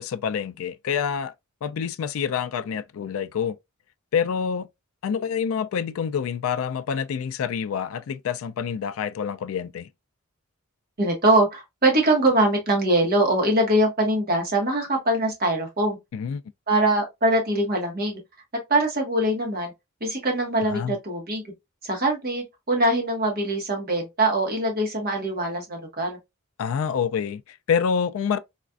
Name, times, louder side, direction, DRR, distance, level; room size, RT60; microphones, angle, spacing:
voice 1, 0.0-1.3 1.6-3.6 4.1-4.7 5.0-9.9 16.1-16.4 20.7-21.0 26.6-28.4, left 7 dB, 65° left, 0.3 m, -27 dB
voice 2, 11.0-16.0 16.7-18.2 18.7-19.7 20.0-21.4 21.8-26.2, right 1 dB, 45° right, 1.3 m, -22 dB
4.1 x 2.4 x 2.3 m
head